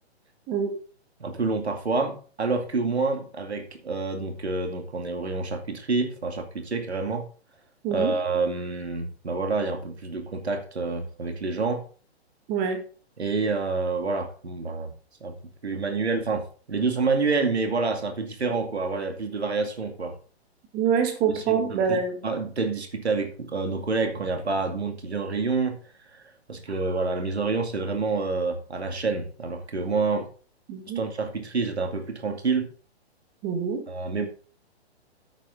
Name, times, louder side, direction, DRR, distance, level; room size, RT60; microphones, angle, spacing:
voice 1, 1.2-7.3 7.9-11.8 13.2-14.9 15.2-15.3 15.6-20.2 21.3-25.8 26.1-30.3 31.0-32.7 33.9-34.3, right 4 dB, 75° right, 2.3 m, -28 dB
voice 2, 12.5-12.8 20.7-22.2 30.7-31.0 33.4-33.9, right 6 dB, 25° right, 1.8 m, -25 dB
9.9 x 8.5 x 3.8 m
figure-of-eight pair, 120°, 33 cm